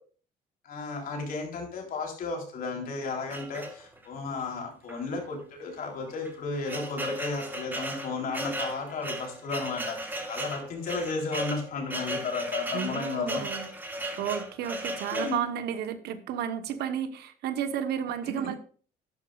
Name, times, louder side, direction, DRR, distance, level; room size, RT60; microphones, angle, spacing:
voice 1, 0.6-13.4 15.1-15.4 18.4-18.5, left 4 dB, 60° left, 1 dB, 3.6 m, -34 dB
sound 1, 3.3-4.2 4.9-5.0 5.3-5.4 6.1-15.4, right 1 dB, 10° right, 1.9 m, -35 dB
voice 2, 12.7-13.7 13.9-18.6, right 9 dB, 75° right, 11 dB, 1.1 m, -32 dB
12.0 x 10.0 x 2.4 m, 0.42 s
cardioid pair, 110°, 17 cm